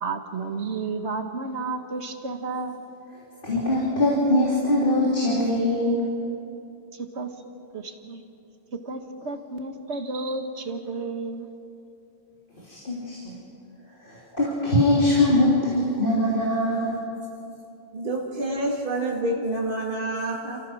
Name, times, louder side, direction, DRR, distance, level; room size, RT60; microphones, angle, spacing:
voice 1, 0.0-2.8 6.9-7.3 7.7-8.2 8.7-11.5, right 3 dB, 90° right, 6 dB, 1.7 m, -32 dB
voice 2, 3.4-6.0 12.7-13.3 14.1-16.9, left 1 dB, 50° left, -6 dB, 3.6 m, -22 dB
voice 3, 17.9-20.6, right 1 dB, 50° right, -2 dB, 2.5 m, -28 dB
30.0 x 15.0 x 6.3 m, 2.6 s
omnidirectional pair, 1.1 m